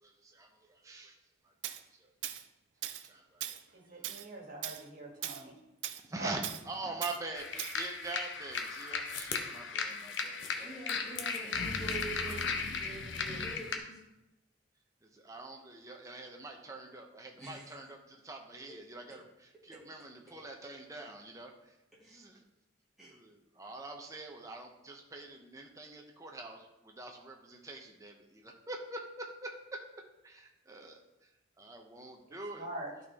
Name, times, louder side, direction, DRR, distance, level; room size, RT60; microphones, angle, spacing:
voice 1, 0.0-1.2 1.7-2.1 3.0-3.6 6.1-6.4 6.7-10.8 15.1-21.7 22.0-22.4 23.0-29.5 30.2-31.0 31.6-32.7, right 2 dB, 15° right, 2 dB, 0.7 m, -45 dB
Tools, 1.6-1.8 2.2-2.4 2.8-3.1 3.4-3.6 4.0-4.3 4.6-4.8 5.2-5.4 5.8-6.0 6.4-6.6 7.0-7.2 7.6-7.8, right 12 dB, 65° right, 0.4 m, -39 dB
voice 2, 3.7-5.5 6.2-6.3 32.5-32.9, right 1 dB, 45° right, -1 dB, 1.9 m, -43 dB
sound 1, 7.4-13.8, left 5 dB, 65° left, 0.8 m, -36 dB
voice 3, 9.9-10.3 10.6-14.0 17.4-17.7 18.7-18.8 19.7-19.8 22.0-22.2 23.0-23.1, right 2 dB, ahead, -8 dB, 2.4 m, -46 dB
11.5 x 4.2 x 3.5 m, 0.93 s
head